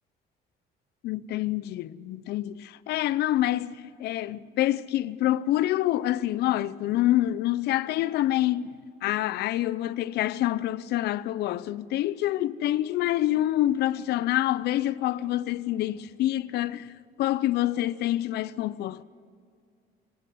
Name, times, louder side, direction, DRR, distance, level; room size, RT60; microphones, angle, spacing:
voice 1, 1.0-8.7 9.0-16.9 17.2-19.0, left 14 dB, 75° left, 0.7 m, -27 dB
26.5 x 12.0 x 9.5 m
cardioid pair, 110°, 17 cm